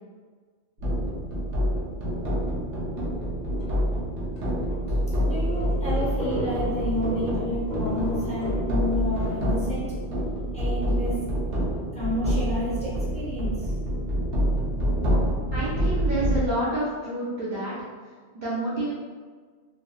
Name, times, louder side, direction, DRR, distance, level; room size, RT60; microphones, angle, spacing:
sound 1, 0.8-16.5, equal, 80° right, 1.1 m, -27 dB
sound 2, 3.6-3.9 4.4-4.5 4.7-4.8 5.2-8.6, equal, 50° left, 0.6 m, -34 dB
voice 1, 5.2-9.9 10.5-11.2 11.9-13.8, left 1 dB, 5° left, -9 dB, 0.8 m, -30 dB
voice 2, 15.5-17.8 18.3-18.9, right 1 dB, 55° right, -8 dB, 0.6 m, -28 dB
3.3 x 2.3 x 2.4 m, 1.5 s
omnidirectional pair, 1.2 m